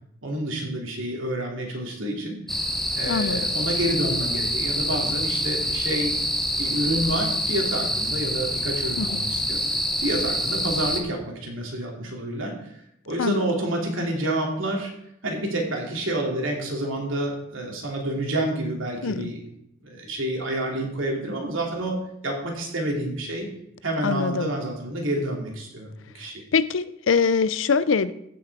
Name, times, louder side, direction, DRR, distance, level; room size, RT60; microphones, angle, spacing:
voice 1, 0.2-2.4 2.9-6.2 6.6-9.6 10.0-12.6 13.1-14.9 15.2-19.4 19.8-22.0 22.2-23.5 23.8-25.9 26.1-26.4, right 1 dB, 80° right, 0 dB, 2.9 m, -28 dB
sound 1, 2.5-11.0, equal, ahead, 1.1 m, -26 dB
voice 2, 3.1-3.5 9.0-9.2 13.2-13.5 19.0-19.3 24.0-24.5 26.5-28.1, left 5 dB, 75° left, 15 dB, 0.5 m, -23 dB
15.0 x 6.1 x 4.8 m, 0.78 s
head